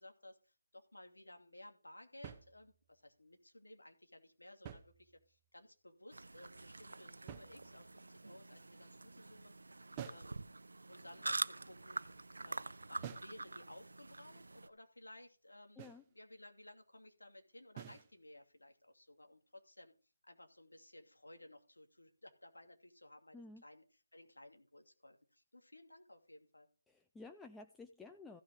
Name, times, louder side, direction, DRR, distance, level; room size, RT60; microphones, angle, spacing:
voice 1, 0.0-10.4 10.9-12.0 12.4-19.9 20.2-23.8 24.1-26.7, left 1 dB, 90° left, 4 dB, 2.5 m, -58 dB
sound 1, 2.2-3.0 4.5-5.5 7.3-8.1 10.0-10.4 13.0-13.4 15.8-16.1 17.8-18.1, right 9 dB, 20° right, 1.0 m, -50 dB
sound 2, 6.1-14.7, right 3 dB, 75° right, 0.6 m, -46 dB
voice 2, 26.9-28.4, left 3 dB, 5° left, 6 dB, 0.4 m, -53 dB
16.0 x 6.2 x 3.5 m, 0.36 s
figure-of-eight pair, 160°, 0 cm